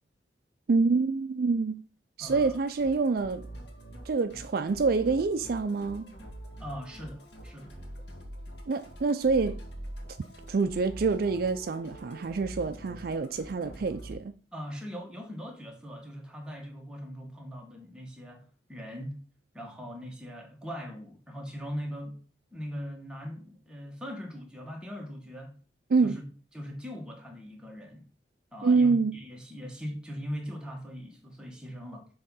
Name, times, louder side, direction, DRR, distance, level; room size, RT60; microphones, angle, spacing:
voice 1, 0.7-1.8 2.2-3.5 4.1-6.1 8.7-9.6 10.5-14.3 25.9-26.2 28.6-29.2, right 4 dB, 60° right, 0.4 m, -26 dB
Musical instrument, 2.2-14.1, right 1 dB, 75° left, 1.8 m, -45 dB
voice 2, 2.2-2.6 6.6-7.7 14.5-18.4 18.7-19.2 19.5-22.2 22.5-25.5 26.0-26.2 26.5-28.0 28.5-32.1, equal, 5° right, 1.6 m, -40 dB
6.6 x 3.6 x 5.5 m
head